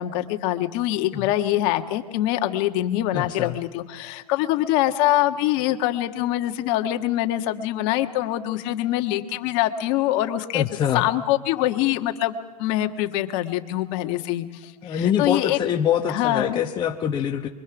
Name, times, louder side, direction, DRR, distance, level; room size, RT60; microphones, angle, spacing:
voice 1, 0.0-10.7 10.9-15.6 16.1-16.6, left 14 dB, 45° left, 7 dB, 1.5 m, -24 dB
voice 2, 3.1-3.6 10.5-11.1 14.8-17.5, left 9 dB, 20° left, 2 dB, 1.0 m, -24 dB
23.5 x 23.0 x 6.0 m, 1.2 s
hypercardioid pair, 125°, 21 cm